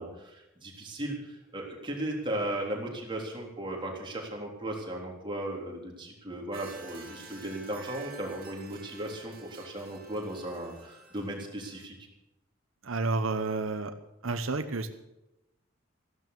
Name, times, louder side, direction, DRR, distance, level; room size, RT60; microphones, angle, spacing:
voice 1, 0.0-12.0, right 1 dB, 25° right, -1 dB, 3.7 m, -36 dB
sound 1, 6.5-11.8, right 4 dB, 50° right, 3.0 m, -50 dB
voice 2, 12.8-13.9 14.2-14.9, right 3 dB, 90° right, 8 dB, 1.0 m, -30 dB
15.0 x 12.5 x 6.9 m, 0.94 s
head